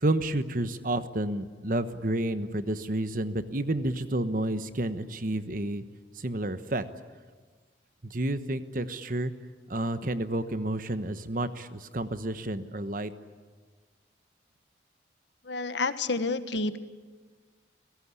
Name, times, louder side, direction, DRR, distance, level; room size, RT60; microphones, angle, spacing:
voice 1, 0.0-5.8 6.1-6.8 8.0-9.3 9.7-13.1, right 1 dB, 45° right, 11 dB, 1.2 m, -30 dB
voice 2, 15.4-16.8, left 3 dB, 75° left, 11 dB, 1.4 m, -29 dB
29.5 x 17.5 x 9.9 m, 1.4 s
head